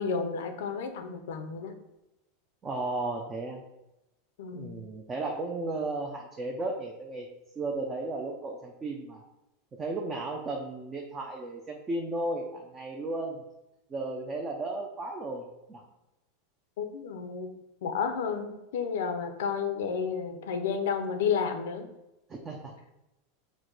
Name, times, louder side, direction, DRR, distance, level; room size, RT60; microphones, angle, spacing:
voice 1, 0.0-1.7 4.4-4.8 16.8-17.5 17.8-21.9, left 6 dB, 80° left, 7 dB, 0.6 m, -31 dB
voice 2, 2.6-3.6 4.5-7.3 7.6-9.2 9.7-13.4 13.9-15.8 22.3-22.7, right 2 dB, 15° right, 0 dB, 0.4 m, -34 dB
4.6 x 2.1 x 3.9 m, 0.93 s
supercardioid pair, 155°, 0 cm